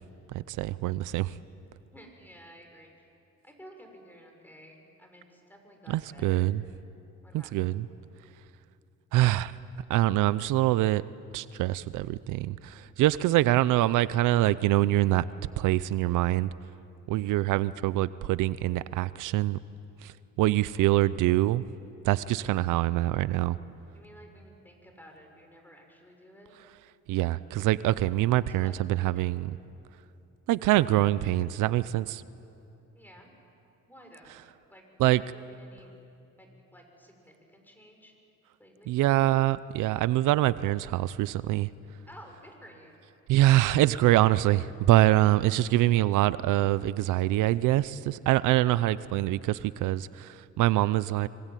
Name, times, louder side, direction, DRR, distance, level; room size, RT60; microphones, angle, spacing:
voice 1, 0.3-1.3 5.9-6.6 7.3-7.9 9.1-9.5 9.9-11.0 11.3-15.2 15.6-16.5 17.1-19.6 20.0-20.1 20.4-21.6 22.0-23.6 27.1-29.5 30.5-32.2 35.0-35.2 38.9-41.7 43.3-51.3, right 15 dB, 90° right, 17 dB, 0.6 m, -24 dB
voice 2, 1.9-2.9 3.4-6.5 7.2-7.5 22.4-22.7 23.9-26.6 28.5-28.8 29.0-29.2 32.9-33.3 33.8-34.3 34.7-34.8 35.2-35.9 36.3-38.1 38.6-39.0 42.1-43.0, equal, 5° left, 3 dB, 6.4 m, -53 dB
24.5 x 24.5 x 9.2 m, 2.8 s
cardioid pair, 90°, 30 cm